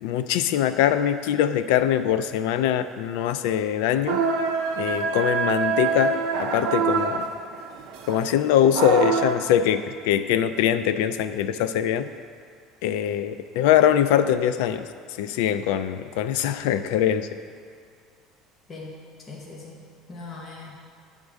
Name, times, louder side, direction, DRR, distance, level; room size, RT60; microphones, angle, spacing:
voice 1, 0.0-4.2 4.8-6.1 6.4-7.3 8.1-12.1 12.8-14.8 15.2-17.3, left 10 dB, 80° left, 11 dB, 0.3 m, -22 dB
sound 1, 4.1-9.4, right 5 dB, 55° right, 0.6 m, -25 dB
voice 2, 18.7-20.7, left 3 dB, 20° left, -3 dB, 0.9 m, -41 dB
9.1 x 3.6 x 6.3 m, 2.2 s
cardioid pair, 180°, 0 cm